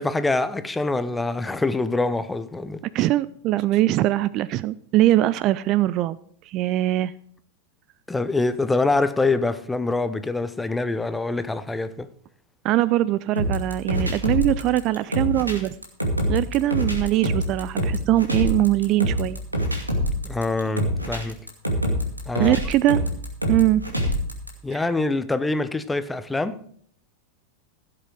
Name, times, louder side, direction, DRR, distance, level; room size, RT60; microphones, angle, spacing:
voice 1, 0.0-2.8 8.1-12.1 20.2-21.4 22.3-22.6 24.6-26.6, left 3 dB, 10° left, 0.8 m, -25 dB
voice 2, 2.9-6.2 6.5-7.1 12.6-15.7 16.3-19.4 22.4-23.0 23.5-23.8 24.7-24.8, right 15 dB, 40° right, 0.4 m, -21 dB
sound 1, 13.4-24.5, equal, 85° right, 2.4 m, -25 dB
16.0 x 7.7 x 4.8 m
figure-of-eight pair, 90°, 0 cm